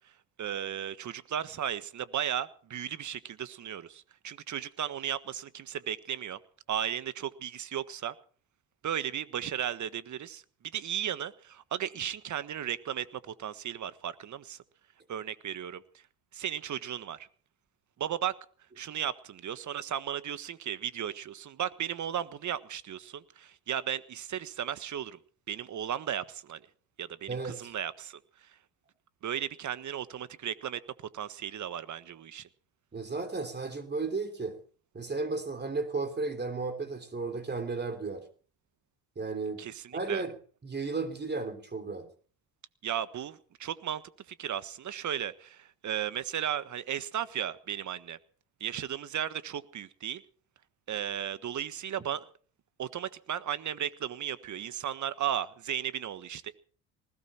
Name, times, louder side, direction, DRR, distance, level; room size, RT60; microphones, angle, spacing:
voice 1, 0.4-6.4 6.7-8.1 8.8-10.4 10.7-14.6 15.1-15.8 16.3-17.3 18.0-18.3 18.8-25.2 25.5-26.6 27.0-28.5 29.2-32.5 39.6-40.2 42.8-48.2 48.6-50.2 50.9-52.3 52.8-56.6, right 10 dB, 45° right, 1.4 m, -35 dB
voice 2, 27.3-27.7 32.9-34.6 34.9-38.3 39.1-39.6 39.9-40.3 40.6-42.1, right 3 dB, 25° right, 3.2 m, -34 dB
20.0 x 16.5 x 4.4 m
hypercardioid pair, 70°, 41 cm